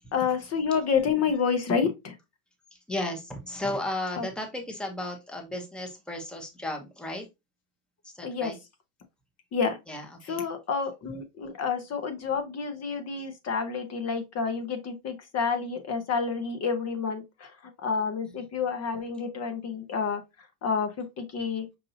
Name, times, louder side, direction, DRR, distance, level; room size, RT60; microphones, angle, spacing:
voice 1, 0.1-2.2 4.2-4.3 8.2-8.5 9.5-9.8 10.3-20.2 20.6-21.7, left 5 dB, 35° left, 1.0 m, -29 dB
voice 2, 2.7-7.3 8.0-8.6 9.9-10.4 18.3-18.4, left 1 dB, ahead, 1.0 m, -35 dB
5.6 x 2.6 x 2.7 m
hypercardioid pair, 100°, 46 cm